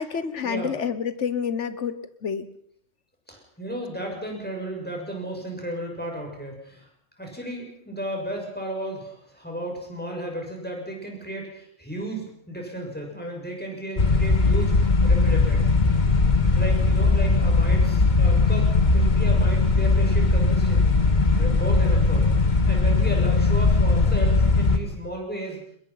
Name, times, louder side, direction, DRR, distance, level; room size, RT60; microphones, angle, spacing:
voice 1, 0.0-1.9 2.2-2.5, left 7 dB, 85° left, 13 dB, 1.5 m, -28 dB
voice 2, 3.3-6.9 7.2-15.9 16.5-21.1 21.3-22.3 22.7-25.6, right 1 dB, 10° left, 0 dB, 6.4 m, -34 dB
sound 1, 14.0-24.8, left 3 dB, 40° left, 1.7 m, -19 dB
23.0 x 21.5 x 5.7 m, 0.67 s
omnidirectional pair, 1.2 m